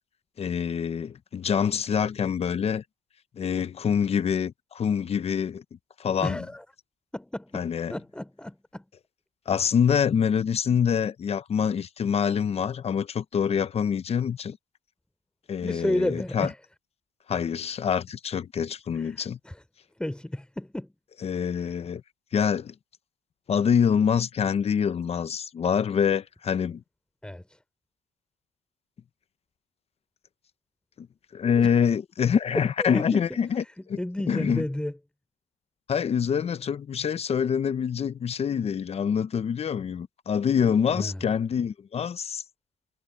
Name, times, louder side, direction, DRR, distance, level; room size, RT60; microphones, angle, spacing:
voice 1, 0.4-2.8 3.4-5.6 6.0-6.4 7.5-7.9 9.5-14.6 15.5-16.5 17.3-19.4 21.2-22.0 22.3-22.7 23.5-26.8 31.0-31.1 31.3-34.0 34.3-34.6 35.9-42.4, left 7 dB, 35° left, 0.9 m, -25 dB
voice 2, 6.2-6.6 7.1-8.8 15.6-16.6 18.9-19.6 20.0-20.9 21.6-21.8 27.2-27.6 31.6-31.7 32.8-33.4 34.0-34.9 41.0-41.2, left 1 dB, 5° left, 3.8 m, -32 dB
cardioid pair, 110°, 17 cm